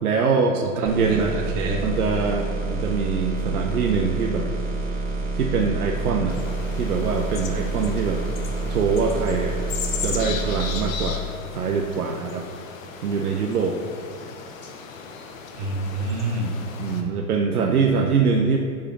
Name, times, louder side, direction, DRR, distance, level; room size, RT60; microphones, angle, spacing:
voice 1, 0.0-1.4 1.8-4.5 5.3-6.4 6.7-9.6 10.0-12.5 13.0-13.8 16.8-18.6, right 5 dB, 80° right, 2 dB, 0.8 m, -24 dB
voice 2, 0.8-1.9 15.6-16.5, right 2 dB, 55° right, 1 dB, 1.7 m, -28 dB
sound 1, 0.9-10.9, right 2 dB, 20° right, 1.2 m, -28 dB
sound 2, 6.3-17.0, left 6 dB, 65° left, 1.1 m, -36 dB
7.1 x 4.9 x 6.0 m, 2.3 s
hypercardioid pair, 105°, 44 cm